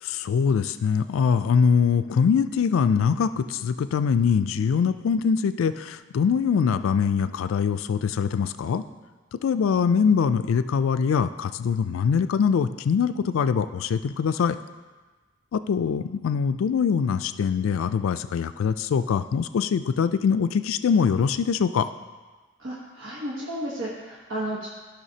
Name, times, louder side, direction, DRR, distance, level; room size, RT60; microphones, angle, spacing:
voice 1, 0.0-8.8 9.3-14.6 15.5-21.9, left 6 dB, 90° left, 12 dB, 0.3 m, -23 dB
voice 2, 22.6-24.7, right 1 dB, 80° right, -5 dB, 1.2 m, -32 dB
14.0 x 5.8 x 2.8 m, 1.3 s
head